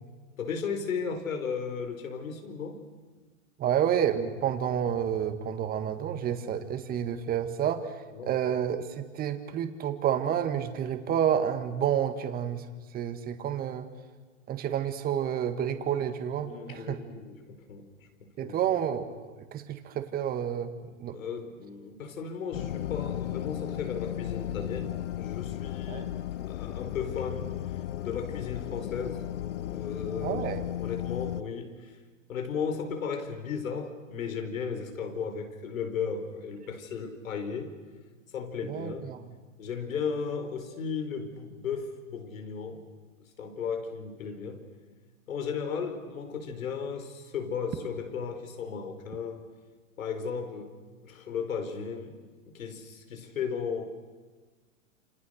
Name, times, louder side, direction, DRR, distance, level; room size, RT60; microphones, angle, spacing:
voice 1, 0.4-2.8 8.1-8.3 16.4-18.1 18.4-18.6 21.1-26.1 26.5-29.3 29.6-32.0 32.3-37.7 38.3-39.1 39.6-42.8 43.4-44.6 45.3-49.4 50.0-50.7 51.0-52.2 52.5-53.9, left 6 dB, 85° left, 6 dB, 4.8 m, -35 dB
voice 2, 3.6-12.6 12.9-13.9 14.5-17.0 18.4-21.1 25.9-26.1 30.2-30.6 38.6-39.2, right 9 dB, 20° right, 8 dB, 1.8 m, -30 dB
sound 1, 22.5-31.4, left 12 dB, 65° left, 1.0 m, -35 dB
28.0 x 26.5 x 6.6 m, 1.4 s
hypercardioid pair, 145°, 40 cm